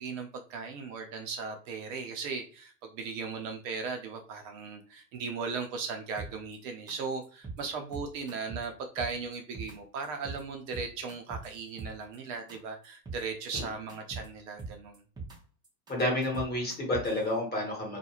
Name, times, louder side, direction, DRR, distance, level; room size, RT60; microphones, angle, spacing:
voice 1, 0.0-15.0, right 5 dB, 50° right, 4 dB, 0.6 m, -37 dB
sound 1, 6.2-6.5 6.9-7.0 7.2-7.6 7.9-8.7 9.0-9.7 10.0-10.4 10.7-12.2 12.5-12.6 12.8-13.2 13.5-14.3 14.6-15.4 15.6-17.2, right 4 dB, 10° right, 0.5 m, -41 dB
voice 2, 15.9-18.0, left 1 dB, 20° left, -1 dB, 1.1 m, -30 dB
2.4 x 2.2 x 2.8 m, 0.40 s
hypercardioid pair, 110°, 49 cm